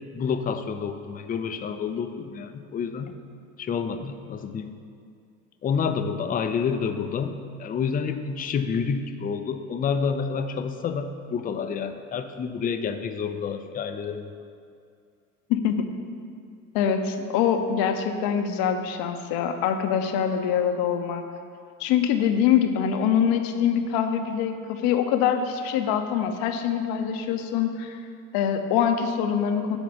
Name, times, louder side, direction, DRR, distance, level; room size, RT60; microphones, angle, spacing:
voice 1, 0.1-3.1 3.6-4.7 5.6-14.3, left 6 dB, 20° left, 8 dB, 0.5 m, -29 dB
voice 2, 15.5-15.9 16.7-21.2 21.8-28.0 28.3-29.8, left 8 dB, 55° left, 7 dB, 0.8 m, -24 dB
7.0 x 5.0 x 7.0 m, 2.4 s
figure-of-eight pair, 65°, 44 cm